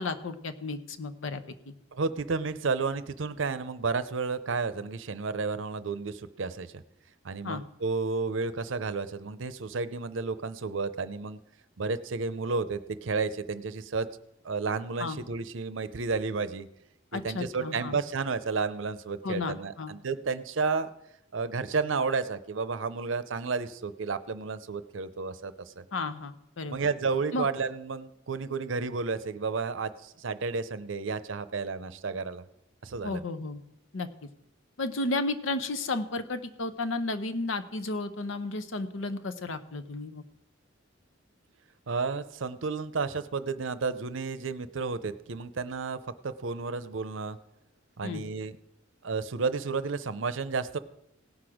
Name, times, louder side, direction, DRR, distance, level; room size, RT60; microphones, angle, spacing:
voice 1, 0.0-1.4 7.4-7.6 15.0-15.2 17.1-18.0 19.2-19.9 25.9-26.8 27.3-27.5 33.0-33.6 33.9-34.1 34.8-40.2 48.0-48.2, left 3 dB, 80° left, 11 dB, 0.8 m, -33 dB
voice 2, 1.9-6.7 7.2-11.4 11.8-14.1 14.4-16.7 17.1-20.9 21.3-25.8 26.7-32.4 32.8-33.2 41.9-47.4 48.0-48.6 49.0-50.8, right 4 dB, 75° right, 13 dB, 0.6 m, -32 dB
17.5 x 6.1 x 4.9 m, 0.82 s
head